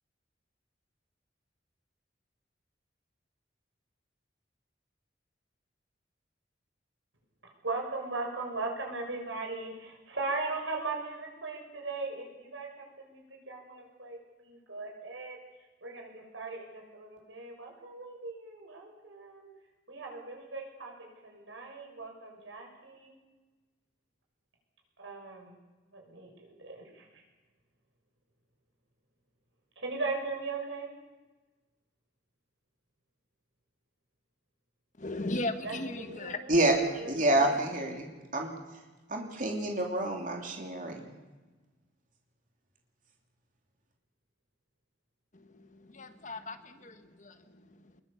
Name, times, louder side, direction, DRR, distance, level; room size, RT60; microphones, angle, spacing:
voice 1, 7.4-12.7 13.0-15.4 15.8-19.5 19.9-23.1 25.0-25.6 25.9-27.2 29.8-30.9 35.6-36.5 36.8-37.6, right 3 dB, 85° right, 1 dB, 6.5 m, -39 dB
voice 2, 35.0-36.4 45.3-48.0, left 2 dB, 40° left, 9 dB, 1.4 m, -38 dB
voice 3, 36.5-38.5 39.1-41.1, right 1 dB, 45° right, 1 dB, 3.0 m, -28 dB
23.5 x 21.5 x 7.1 m, 1.2 s
head